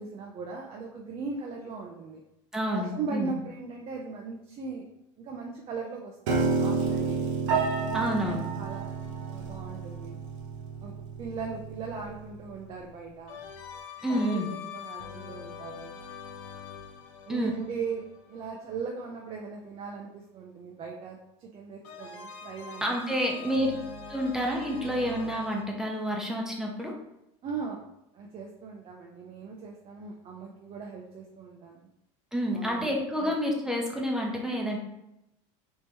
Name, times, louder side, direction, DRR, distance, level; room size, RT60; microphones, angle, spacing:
voice 1, 0.0-2.2 2.6-4.8 5.2-7.3 7.8-8.9 9.3-10.2 10.8-13.4 14.1-15.9 17.3-22.9 23.4-23.6 27.4-27.8 28.1-31.9 32.5-32.9 33.2-33.3, right 5 dB, 40° right, 0 dB, 0.5 m, -39 dB
voice 2, 2.5-3.3 7.9-8.5 14.0-14.5 17.3-17.5 22.8-23.7 24.1-26.9 32.3-34.8, equal, 5° right, -1 dB, 0.8 m, -29 dB
Piano, 6.3-12.5, right 4 dB, 90° right, 0.7 m, -30 dB
sound 1, 8.7-10.7 13.3-19.2 21.8-25.6, left 6 dB, 80° left, 0.6 m, -44 dB
3.6 x 2.9 x 2.9 m, 0.86 s
supercardioid pair, 110°, 16 cm